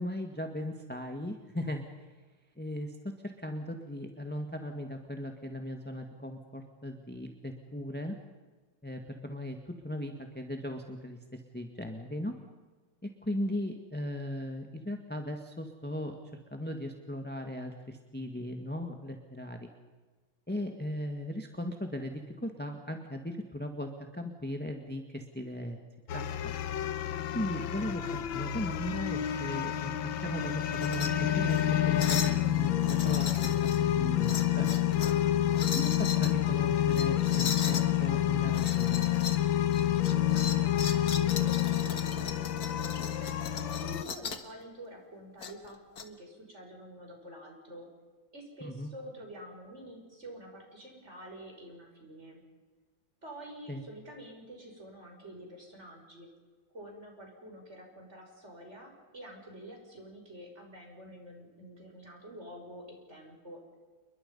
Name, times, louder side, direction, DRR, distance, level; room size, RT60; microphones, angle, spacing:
voice 1, 0.0-1.8 2.6-3.0 3.2-8.1 8.8-9.6 9.8-12.3 13.2-16.2 16.5-19.7 20.5-25.8 26.1-26.5 27.3-28.0 28.3-29.9 30.2-33.7 34.0-34.7 35.7-39.0 48.6-48.9 53.7-53.8, left 1 dB, 5° left, 3 dB, 1.6 m, -37 dB
sound 1, 26.1-44.0, left 12 dB, 80° left, 1.8 m, -28 dB
sound 2, 30.7-31.1 31.5-31.6 32.0-32.4 32.8-33.8 34.2-35.2 35.5-36.3 36.9-37.9 38.5-39.4 39.7-44.5 45.4-46.0, left 5 dB, 55° left, 1.9 m, -38 dB
voice 2, 40.3-42.5 43.0-47.9 48.3-52.4 53.2-56.3 56.7-63.6, right 1 dB, 35° right, 1 dB, 6.2 m, -48 dB
29.5 x 22.0 x 5.6 m, 1.3 s
omnidirectional pair, 2.1 m